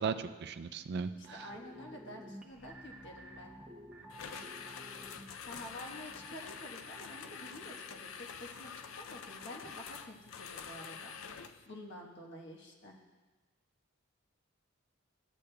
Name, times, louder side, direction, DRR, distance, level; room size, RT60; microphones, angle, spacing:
voice 1, 0.0-1.5 4.3-4.4, right 5 dB, 55° right, 10 dB, 0.4 m, -37 dB
voice 2, 1.1-3.6 5.4-11.4 11.7-13.0, left 1 dB, 60° left, 0 dB, 1.2 m, -49 dB
sound 1, 1.2-10.6 10.9-11.0, right 1 dB, 5° right, 0.8 m, -54 dB
sound 2, 4.1-11.7, left 7 dB, 75° left, 0.4 m, -47 dB
14.0 x 8.5 x 2.3 m, 1.3 s
head